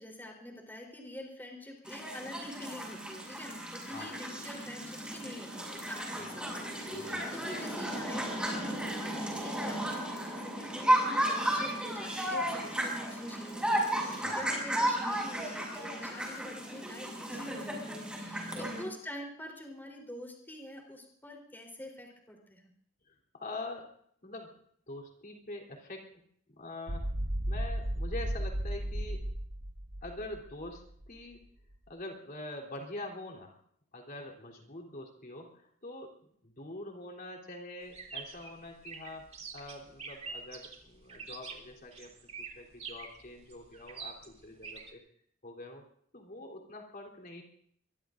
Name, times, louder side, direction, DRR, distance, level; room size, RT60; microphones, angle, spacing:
voice 1, 0.0-22.7, left 1 dB, 10° left, 0 dB, 3.8 m, -46 dB
sound 1, 1.9-18.8, right 1 dB, 5° right, 6.3 m, -34 dB
voice 2, 6.9-7.3 14.1-14.4 18.5-18.7 23.1-23.9 24.2-24.5 24.9-26.2 26.5-27.1 27.5-29.3 30.0-31.5 31.9-33.6 33.9-36.1 36.4-42.1 42.4-45.0 45.4-45.8 46.1-47.4, left 2 dB, 45° left, 1 dB, 3.6 m, -45 dB
sound 2, 26.9-31.1, right 1 dB, 75° right, 1.5 m, -34 dB
sound 3, 37.9-44.9, right 5 dB, 35° right, 2.9 m, -45 dB
25.0 x 22.5 x 2.6 m, 0.65 s
head